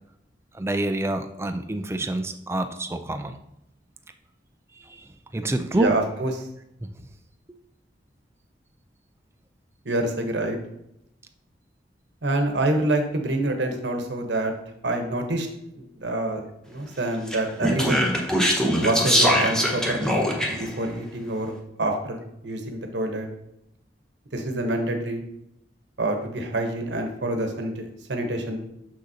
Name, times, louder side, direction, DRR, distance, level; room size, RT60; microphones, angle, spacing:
voice 1, 0.6-3.4 5.3-5.9, right 2 dB, 15° right, 7 dB, 0.4 m, -27 dB
voice 2, 5.7-6.5 9.8-10.6 12.2-14.5 14.8-15.5 15.8-18.1 18.8-20.2 20.5-21.5 21.8-23.3 24.3-25.2 26.0-28.6, right 1 dB, 75° right, 4 dB, 1.0 m, -27 dB
Speech, 17.3-20.7, equal, 5° left, 0.8 m, -22 dB
6.4 x 6.2 x 2.8 m, 0.81 s
head